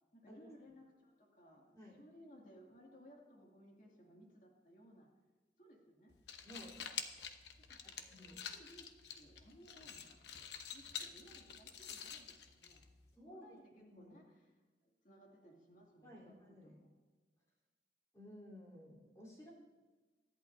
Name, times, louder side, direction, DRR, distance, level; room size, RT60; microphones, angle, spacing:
voice 1, 0.1-5.1 5.6-6.1 7.7-12.9 13.2-14.6 14.8-16.9, equal, 50° left, -1 dB, 2.4 m, -61 dB
voice 2, 1.8-2.1 6.4-6.8 8.1-8.4 13.1-14.2 16.0-16.8 18.1-19.5, equal, 20° left, -4 dB, 3.6 m, -56 dB
sound 1, 6.1-13.1, left 7 dB, 80° left, 0.9 m, -48 dB
23.5 x 11.0 x 2.7 m, 1.3 s
head